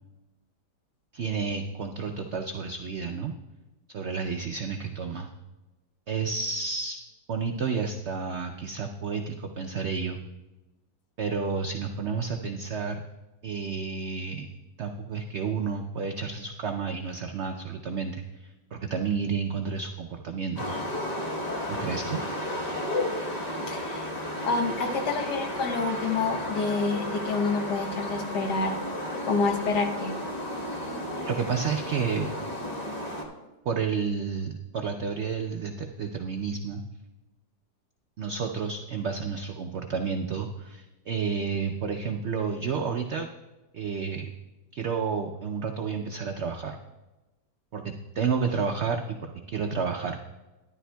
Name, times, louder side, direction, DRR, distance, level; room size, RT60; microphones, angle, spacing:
voice 1, 1.1-3.3 3.9-5.3 6.1-7.0 7.3-10.2 11.2-13.0 13.4-14.5 14.8-20.8 21.7-22.2 31.2-32.3 33.7-36.8 38.2-43.3 43.7-44.3 44.7-46.8 47.7-50.2, right 5 dB, 80° right, 4 dB, 0.6 m, -31 dB
sound 1, 20.6-33.2, left 1 dB, 30° left, 1.0 m, -33 dB
voice 2, 23.7-24.1 24.4-28.8 29.2-30.1, left 4 dB, 75° left, 4 dB, 1.5 m, -28 dB
12.5 x 11.0 x 2.2 m, 1.1 s
omnidirectional pair, 1.8 m